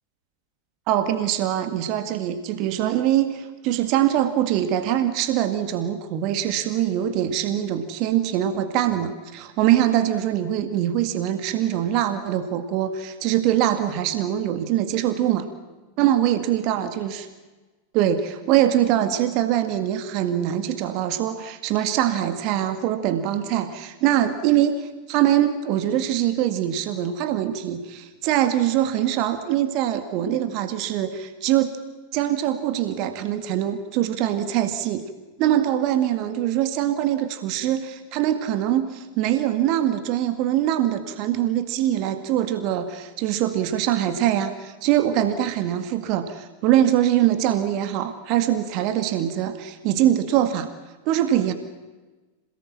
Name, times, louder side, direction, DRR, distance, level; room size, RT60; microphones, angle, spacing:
voice 1, 0.9-15.5 16.0-17.3 17.9-31.7 32.1-35.1 35.4-50.7 51.1-51.5, right 11 dB, 40° right, 10 dB, 1.9 m, -23 dB
27.0 x 18.5 x 7.4 m, 1.2 s
figure-of-eight pair, 90°, 0 cm